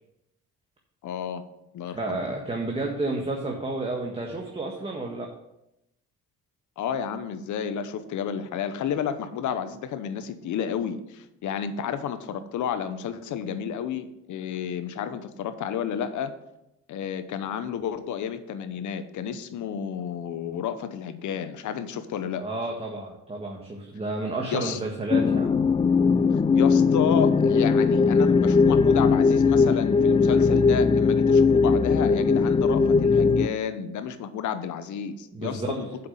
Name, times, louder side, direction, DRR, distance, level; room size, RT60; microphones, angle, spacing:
voice 1, 1.0-1.4 1.7-2.2 6.8-16.3 16.9-22.4 24.5-24.8 26.3-36.1, left 8 dB, 75° left, 11 dB, 0.9 m, -31 dB
voice 2, 1.9-5.3 22.4-25.5 35.3-35.9, right 2 dB, 20° right, 0 dB, 1.5 m, -31 dB
sound 1, 25.1-33.5, left 5 dB, 20° left, 0.4 m, -19 dB
7.7 x 6.0 x 6.5 m, 0.86 s
cardioid pair, 90°, 30 cm